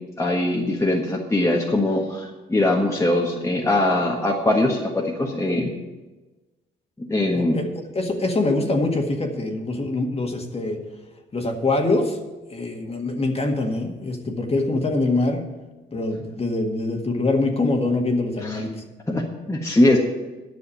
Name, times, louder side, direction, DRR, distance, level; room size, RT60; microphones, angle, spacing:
voice 1, 0.2-5.7 7.0-7.6 18.4-18.6 19.1-20.0, left 1 dB, 15° left, -1 dB, 1.5 m, -21 dB
voice 2, 7.3-7.6 7.9-10.8 11.3-12.2 12.5-15.5 15.9-18.8, left 2 dB, 30° left, 3 dB, 1.8 m, -24 dB
10.0 x 6.4 x 8.8 m, 1.2 s
cardioid pair, 90°, 20 cm